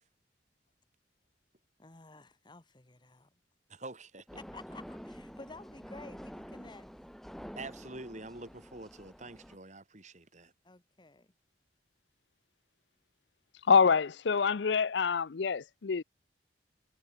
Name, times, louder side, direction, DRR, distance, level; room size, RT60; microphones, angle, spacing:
voice 1, 1.8-3.3 4.4-6.9 10.6-11.3, left 3 dB, 25° left, 1.2 m, -52 dB
voice 2, 3.7-4.4 7.6-10.5, right 2 dB, 40° right, 4.3 m, -46 dB
sound 1, 4.3-9.6, equal, ahead, 1.5 m, -48 dB
voice 3, 13.7-16.0, left 5 dB, 70° left, 0.5 m, -26 dB
head